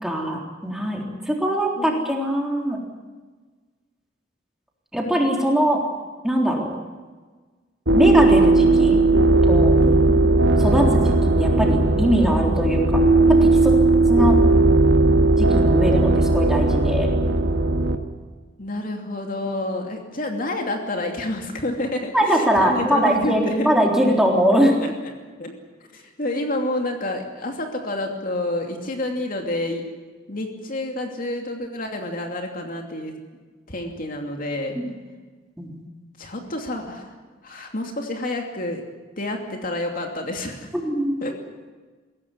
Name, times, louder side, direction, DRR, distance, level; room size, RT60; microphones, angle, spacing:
voice 1, 0.0-2.8 4.9-5.8 6.2-6.7 7.9-9.0 9.5-9.8 10.6-13.0 13.3-13.7 14.1-14.4 15.4-17.1 22.1-24.8 34.8-34.9 35.6-35.8 40.7-41.2, equal, 5° right, 0 dB, 3.7 m, -21 dB
sound 1, 7.9-18.0, right 2 dB, 65° right, 1.8 m, -17 dB
voice 2, 9.8-10.3 18.6-23.7 24.5-24.9 25.4-25.5 25.9-29.8 30.3-33.1 33.7-34.8 36.2-37.1 37.4-38.8 39.2-40.7 41.2-41.3, left 1 dB, 45° left, 3 dB, 2.8 m, -29 dB
22.0 x 17.0 x 9.8 m, 1.4 s
head